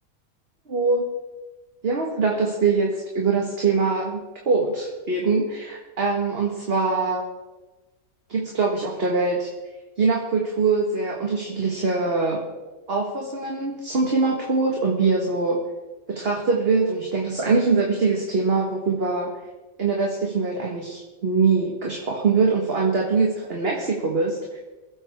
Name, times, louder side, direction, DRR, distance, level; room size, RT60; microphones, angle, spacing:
voice 1, 0.7-1.1 1.8-7.2 8.3-9.5 10.0-12.4 12.9-15.6 16.1-19.3 19.8-24.6, right 4 dB, 45° right, -1 dB, 1.7 m, -23 dB
24.0 x 8.4 x 3.6 m, 1.2 s
omnidirectional pair, 1.5 m